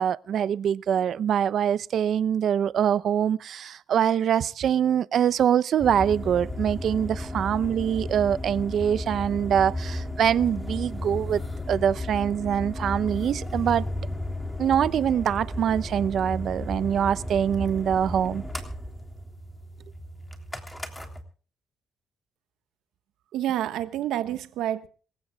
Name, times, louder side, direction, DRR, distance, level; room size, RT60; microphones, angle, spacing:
voice 1, 0.0-11.4 11.7-13.8 14.6-18.4, right 9 dB, 65° right, 0.6 m, -24 dB
sound 1, 5.8-21.2, left 1 dB, 10° left, 3.3 m, -34 dB
voice 2, 23.3-24.9, right 12 dB, 85° right, 1.3 m, -28 dB
26.5 x 15.5 x 2.3 m
cardioid pair, 90°, 0 cm